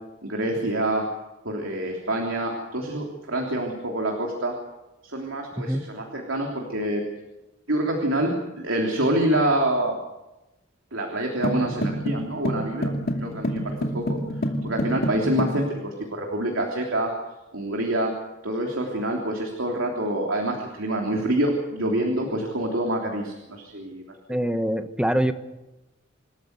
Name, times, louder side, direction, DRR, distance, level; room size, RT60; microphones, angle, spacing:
voice 1, 0.2-1.0 1.5-4.5 5.0-7.0 7.7-10.0 10.9-14.2 14.6-17.1 17.5-18.1 18.4-24.0, right 1 dB, 90° right, 0 dB, 3.4 m, -26 dB
sound 1, 11.4-15.6, equal, 50° left, 2.5 m, -28 dB
voice 2, 24.3-25.3, equal, 5° right, 8 dB, 1.2 m, -24 dB
27.5 x 13.5 x 8.2 m, 1.0 s
head